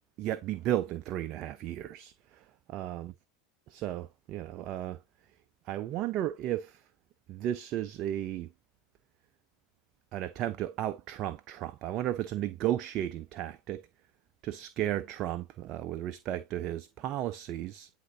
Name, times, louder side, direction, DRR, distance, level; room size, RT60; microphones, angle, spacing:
voice 1, 0.2-3.1 3.7-5.0 5.7-6.8 7.3-8.5 10.1-13.9 14.4-17.9, right 12 dB, 50° right, 0.5 m, -34 dB
9.5 x 3.7 x 2.7 m
hypercardioid pair, 85°, 0 cm